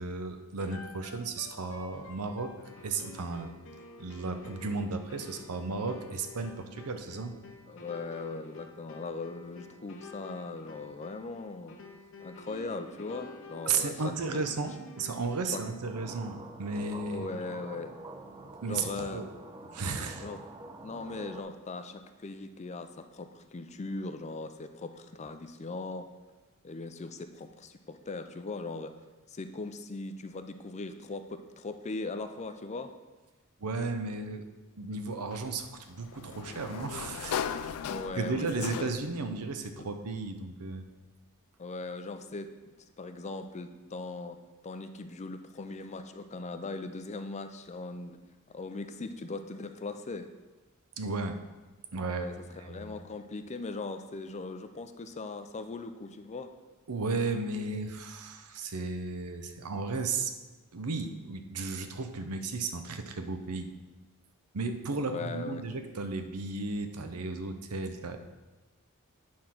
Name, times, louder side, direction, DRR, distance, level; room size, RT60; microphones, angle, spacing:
voice 1, 0.0-2.5 2.8-3.5 4.0-7.4 13.7-17.3 18.6-19.3 19.7-20.3 33.6-34.4 34.8-37.4 38.2-40.8 51.0-51.4 51.9-53.0 56.9-60.3 60.7-63.7 64.5-68.2, right 3 dB, 90° right, 7 dB, 0.7 m, -34 dB
sound 1, 0.6-15.9, left 3 dB, 60° left, 0.8 m, -50 dB
voice 2, 7.7-11.8 12.2-14.5 15.5-15.6 17.1-17.9 18.7-19.2 20.2-20.4 20.8-26.1 26.6-28.9 29.3-32.9 37.8-39.0 39.8-39.9 41.6-42.5 43.0-44.4 44.6-48.2 48.5-50.3 52.1-56.5 65.1-65.6, left 3 dB, 30° left, 9 dB, 0.5 m, -39 dB
sound 2, 15.8-21.4, right 2 dB, 20° right, 0.5 m, -46 dB
Sliding door, 35.3-39.2, left 8 dB, 90° left, 0.4 m, -38 dB
8.8 x 3.7 x 5.9 m, 1.2 s
head